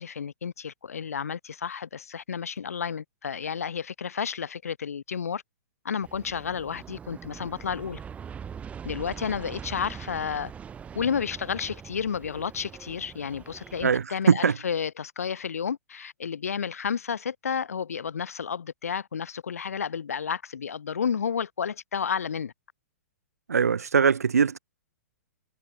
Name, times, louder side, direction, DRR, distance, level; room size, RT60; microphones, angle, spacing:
voice 1, 0.0-5.4 5.8-8.0 8.9-10.5 11.0-22.5, left 7 dB, 65° left, 1.9 m, -31 dB
Aircraft, 6.0-14.0, right 7 dB, 15° right, 7.8 m, -42 dB
voice 2, 23.5-24.6, right 6 dB, 70° right, 0.6 m, -21 dB
figure-of-eight pair, 115°, 9 cm